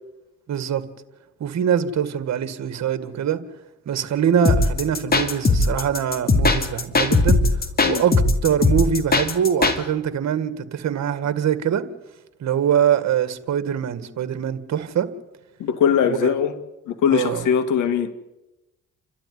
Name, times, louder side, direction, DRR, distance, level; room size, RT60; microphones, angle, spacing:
voice 1, 0.5-0.8 1.4-3.4 3.9-7.4 7.9-8.1 8.4-11.8 12.4-15.1 16.0-16.3 17.1-17.5, right 8 dB, 60° right, 2.1 m, -23 dB
sound 1, 4.4-9.8, left 3 dB, 30° left, 2.8 m, -19 dB
voice 2, 15.6-16.6 16.9-18.1, left 8 dB, 85° left, 2.2 m, -21 dB
29.0 x 13.0 x 9.8 m
cardioid pair, 90°, 30 cm